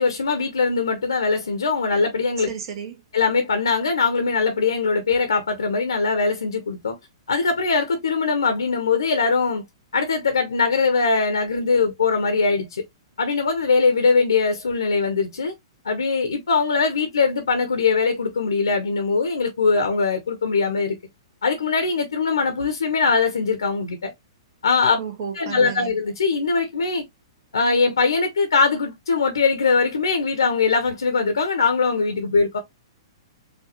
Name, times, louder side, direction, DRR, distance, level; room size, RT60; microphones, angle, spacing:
voice 1, 0.0-2.5 3.1-7.0 7.3-9.6 9.9-12.8 13.2-15.5 15.8-21.0 21.4-24.1 24.6-25.0 25.3-27.0 27.5-32.6, left 4 dB, 70° left, 1.0 m, -21 dB
voice 2, 2.5-3.0 25.0-25.9, right 7 dB, 50° right, 1.5 m, -32 dB
5.1 x 2.7 x 2.9 m
figure-of-eight pair, 110°, 3 cm